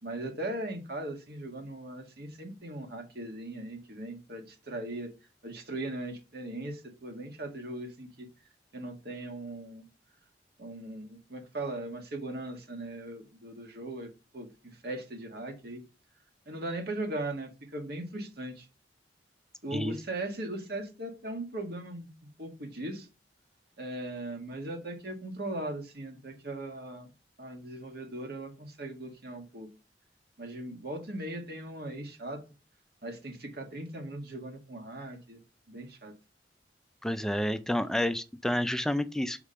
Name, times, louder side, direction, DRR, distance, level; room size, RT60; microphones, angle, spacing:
voice 1, 0.0-5.1 5.4-8.3 8.7-9.8 10.6-15.8 16.4-18.7 19.6-23.1 23.8-27.1 27.4-29.7 30.4-32.4 33.0-35.4 35.7-36.1, right 1 dB, 60° right, 1.7 m, -39 dB
voice 2, 37.0-39.4, left 1 dB, 5° left, 0.4 m, -29 dB
4.9 x 4.9 x 5.6 m
head